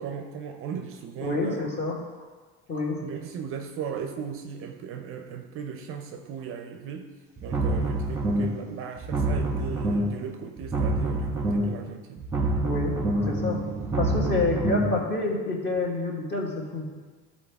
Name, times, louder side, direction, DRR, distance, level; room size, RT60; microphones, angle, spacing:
voice 1, 0.0-1.6 3.0-7.1 7.4-12.3, right 7 dB, 40° right, 5 dB, 0.5 m, -37 dB
voice 2, 1.2-2.0 2.7-3.0 12.6-13.0 13.2-13.6 14.0-16.9, left 2 dB, 30° left, -1 dB, 1.5 m, -28 dB
sound 1, 7.4-8.6 9.0-10.2 10.6-11.8 12.2-15.0, right 1 dB, 10° right, 1.1 m, -27 dB
12.0 x 4.2 x 3.5 m, 1.4 s
cardioid pair, 140°, 35 cm